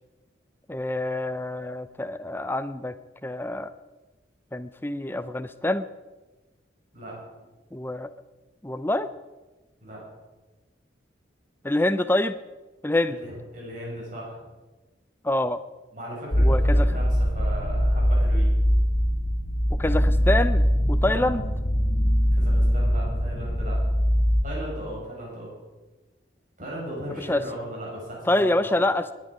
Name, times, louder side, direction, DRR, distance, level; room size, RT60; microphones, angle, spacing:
voice 1, 0.7-2.9 3.2-3.7 4.5-5.9 7.7-8.1 8.6-9.1 11.6-12.4 12.8-13.2 15.2-15.6 16.4-16.9 19.8-21.4 27.3-27.4 28.3-29.1, left 1 dB, 10° left, 12 dB, 0.6 m, -26 dB
voice 2, 13.1-14.4 15.9-18.5 21.1-21.3 22.3-23.8 24.4-25.5 26.6-28.8, right 1 dB, 45° right, -4 dB, 6.3 m, -37 dB
sound 1, 16.3-24.4, equal, 50° left, 2.2 m, -22 dB
20.5 x 10.5 x 4.9 m, 1.2 s
head